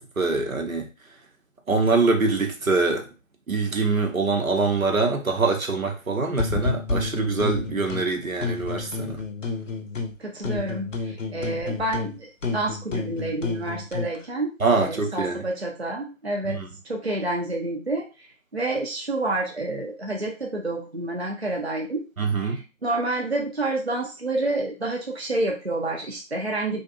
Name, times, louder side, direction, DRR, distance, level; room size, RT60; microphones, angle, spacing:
voice 1, 0.2-0.9 1.7-3.1 3.5-9.2 14.6-15.4 16.4-16.7 22.2-22.6, right 3 dB, 85° right, 3 dB, 0.8 m, -24 dB
sound 1, 6.4-8.1 8.4-10.2 10.4-14.2, left 3 dB, 65° left, 0.6 m, -30 dB
voice 2, 10.2-18.3 18.5-22.0 22.4-26.8, right 2 dB, 55° right, 0 dB, 0.5 m, -29 dB
2.5 x 2.1 x 2.5 m, 0.32 s
figure-of-eight pair, 175°, 40 cm